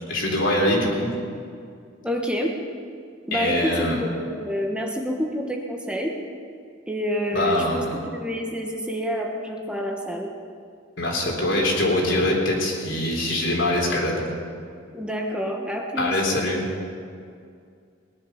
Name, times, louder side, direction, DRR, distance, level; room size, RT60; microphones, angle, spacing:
voice 1, 0.1-1.1 3.3-4.0 7.3-7.9 11.0-14.2 16.0-16.7, left 1 dB, 70° left, -1 dB, 3.7 m, -23 dB
voice 2, 2.0-2.6 3.3-6.2 6.9-7.8 8.1-10.3 14.9-16.2, equal, 5° right, 1 dB, 1.2 m, -28 dB
19.0 x 11.0 x 5.8 m, 2.3 s
head